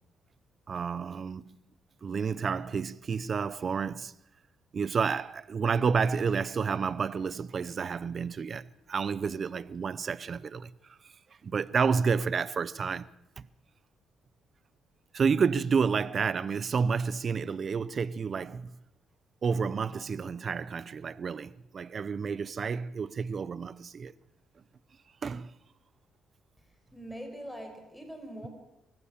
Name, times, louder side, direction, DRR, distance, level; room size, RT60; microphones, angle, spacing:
voice 1, 0.7-1.6 2.0-4.1 4.7-10.7 11.4-13.1 15.1-18.8 19.4-24.1 25.2-25.5, right 5 dB, 45° right, 0.7 m, -30 dB
voice 2, 26.9-28.5, equal, 5° left, 5.4 m, -42 dB
24.0 x 15.0 x 7.3 m
cardioid pair, 90°, 0 cm